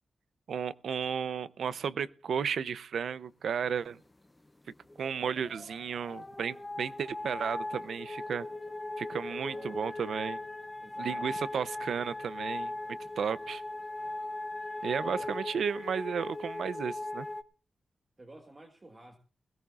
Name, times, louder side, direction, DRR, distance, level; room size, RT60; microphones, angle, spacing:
voice 1, 0.5-4.0 5.0-8.5 9.0-10.4 11.0-12.7 13.2-13.6 14.8-17.3, right 7 dB, 80° right, 0.5 m, -33 dB
sound 1, 4.9-17.4, left 2 dB, 15° left, 0.6 m, -39 dB
voice 2, 9.2-10.4 10.8-11.3 15.0-15.3 18.2-19.2, right 2 dB, 30° right, 1.5 m, -51 dB
20.5 x 17.0 x 2.4 m
wide cardioid pair, 95°, 0 cm